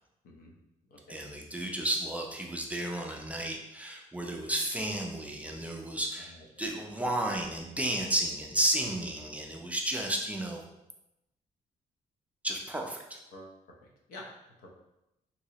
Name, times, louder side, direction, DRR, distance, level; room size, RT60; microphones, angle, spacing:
voice 1, 1.1-6.3 6.6-10.6 12.4-13.2, right 1 dB, 10° right, 0 dB, 0.3 m, -32 dB
voice 2, 13.3-14.3 14.6-14.7, left 1 dB, 85° left, -1 dB, 0.7 m, -49 dB
3.0 x 2.9 x 2.8 m, 0.89 s
cardioid pair, 135°, 15 cm